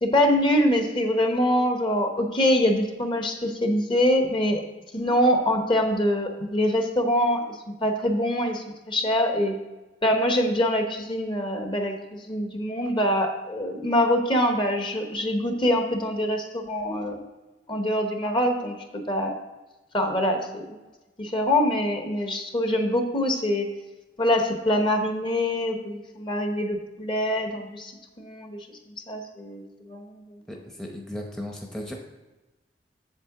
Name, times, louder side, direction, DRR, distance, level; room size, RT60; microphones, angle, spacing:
voice 1, 0.0-4.6 4.9-9.6 10.0-17.2 17.7-19.4 19.9-20.8 21.2-23.7 24.2-27.9 28.2-28.7 29.1-30.0, left 1 dB, 30° left, 4 dB, 0.9 m, -24 dB
voice 2, 30.5-31.9, left 1 dB, 5° left, 0 dB, 0.8 m, -36 dB
7.5 x 7.3 x 3.7 m, 1.1 s
head